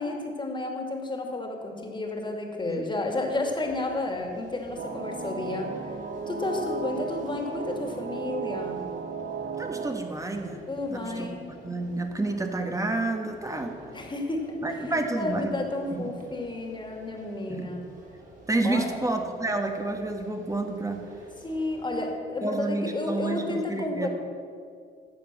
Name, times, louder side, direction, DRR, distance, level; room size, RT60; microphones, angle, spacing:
voice 1, 0.0-6.0 6.3-8.9 10.7-11.4 13.9-17.8 18.6-19.0 21.4-24.1, left 2 dB, 25° left, 2 dB, 2.4 m, -32 dB
sound 1, 3.3-22.1, right 2 dB, 40° right, 3.4 m, -51 dB
sound 2, 4.8-9.9, right 5 dB, 60° right, 1.4 m, -34 dB
voice 2, 9.6-10.6 10.9-13.7 14.6-15.6 15.9-16.0 17.5-17.7 18.5-21.0 22.4-24.1, right 2 dB, 15° right, 4 dB, 1.5 m, -30 dB
12.5 x 7.5 x 7.4 m, 2.3 s
cardioid pair, 90°, 20 cm